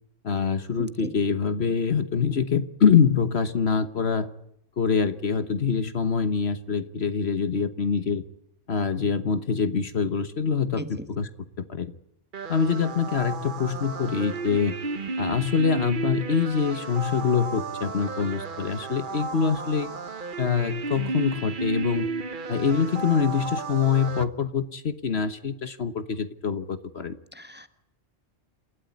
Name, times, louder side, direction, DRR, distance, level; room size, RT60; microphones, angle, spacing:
voice 1, 0.2-4.3 4.8-8.2 8.7-11.3 11.6-11.9 12.5-14.8 15.2-19.9 20.4-22.1 22.5-27.2, left 6 dB, 55° left, 11 dB, 1.5 m, -25 dB
voice 2, 0.8-1.1 10.8-11.1 27.3-27.7, equal, 10° right, 9 dB, 1.4 m, -38 dB
sound 1, 12.3-24.2, right 3 dB, 45° right, 1.2 m, -33 dB
29.0 x 13.0 x 9.6 m, 0.75 s
omnidirectional pair, 1.3 m